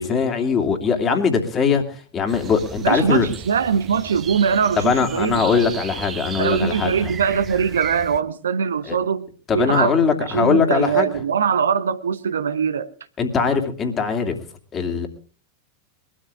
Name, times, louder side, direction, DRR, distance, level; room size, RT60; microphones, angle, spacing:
voice 1, 0.0-1.8 2.1-3.3 4.8-7.1 8.9-9.0 9.5-11.1 13.2-14.4 14.7-15.1, left 5 dB, 25° left, 2.8 m, -21 dB
sound 1, 2.3-8.2, right 8 dB, 25° right, 1.1 m, -36 dB
voice 2, 2.8-5.6 6.4-12.9, right 7 dB, 70° right, 0.9 m, -22 dB
22.0 x 13.0 x 3.6 m
figure-of-eight pair, 90°, 0 cm